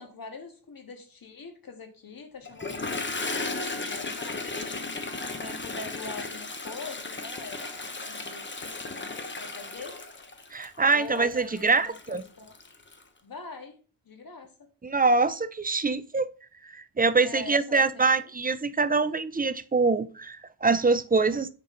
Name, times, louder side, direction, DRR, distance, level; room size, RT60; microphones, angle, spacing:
voice 1, 0.0-4.9 5.4-10.0 10.8-12.5 13.2-13.7 14.1-14.5 17.2-18.3, left 3 dB, 45° left, 1.8 m, -43 dB
Toilet flush, 2.5-13.0, left 3 dB, 20° left, 1.0 m, -35 dB
voice 2, 10.5-12.2 14.8-16.2 16.7-21.5, right 4 dB, 20° right, 0.4 m, -24 dB
9.4 x 6.0 x 3.9 m
wide cardioid pair, 130°, 50 cm